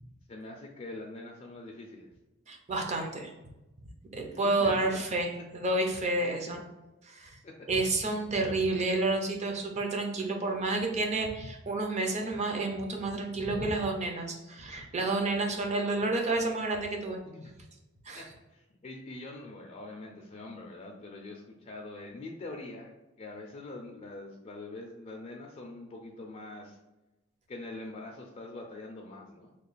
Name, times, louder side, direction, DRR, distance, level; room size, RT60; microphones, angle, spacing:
voice 1, 0.3-2.1 4.3-5.1 6.2-6.7 7.4-7.7 17.2-17.5 18.1-26.8 27.5-29.6, left 2 dB, 35° left, 0 dB, 0.4 m, -44 dB
voice 2, 2.5-3.3 4.1-6.6 7.1-7.4 7.7-17.2 18.1-18.2, right 2 dB, 35° right, 2 dB, 0.6 m, -30 dB
3.0 x 2.3 x 3.9 m, 1.0 s
head